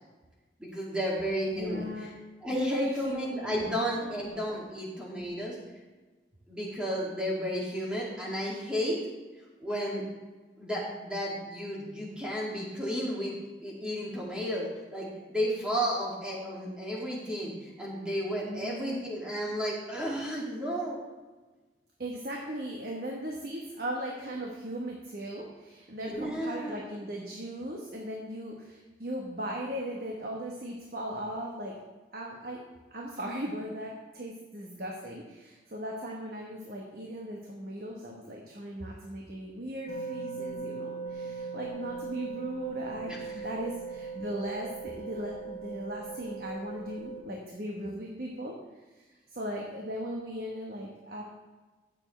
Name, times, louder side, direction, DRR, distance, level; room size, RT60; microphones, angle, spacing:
voice 1, 0.6-1.8 2.4-5.6 6.5-9.0 9.6-10.0 10.6-13.3 13.6-14.7 14.9-21.0 26.0-26.8 43.1-43.2, equal, 5° right, -5 dB, 2.5 m, -32 dB
voice 2, 1.5-2.1 2.5-3.6 4.0-4.1 18.4-19.0 22.0-31.7 32.1-32.6 32.9-48.5 48.9-51.2, equal, 55° right, -1 dB, 1.3 m, -38 dB
sound 1, 39.9-47.2, right 5 dB, 25° left, 1.7 m, -39 dB
15.5 x 7.2 x 3.3 m, 1.3 s
head